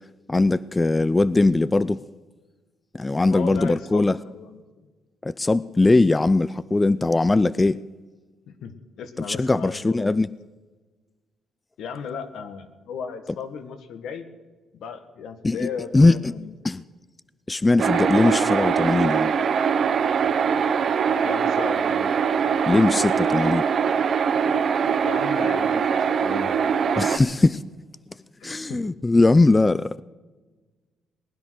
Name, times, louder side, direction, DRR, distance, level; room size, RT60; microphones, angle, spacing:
voice 1, 0.3-2.0 2.9-4.2 5.2-7.8 9.3-10.3 15.4-15.7 15.9-16.1 16.6-16.8 17.5-19.3 22.7-23.6 26.9-27.6 28.4-30.0, left 2 dB, 20° left, 0.4 m, -20 dB
voice 2, 3.2-4.6 8.5-10.2 11.8-14.3 14.7-16.7 18.2-19.0 21.2-22.1 25.0-26.5 28.4-28.8, left 6 dB, 75° left, 1.7 m, -36 dB
sound 1, 17.8-27.2, right 7 dB, 55° right, 0.9 m, -22 dB
20.0 x 10.5 x 6.5 m
cardioid pair, 90°, 0 cm